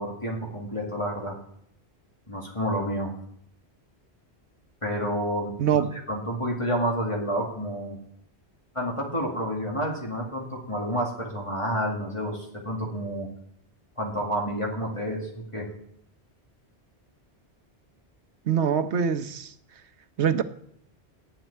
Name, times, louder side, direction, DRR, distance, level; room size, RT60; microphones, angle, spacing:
voice 1, 0.0-1.3 2.3-3.1 4.8-5.8 6.1-8.0 8.7-13.3 14.0-15.7, equal, 30° left, 2.3 m, -29 dB
voice 2, 18.5-19.5 20.2-20.4, right 8 dB, 80° right, 1.2 m, -24 dB
11.5 x 7.6 x 9.4 m
omnidirectional pair, 1.1 m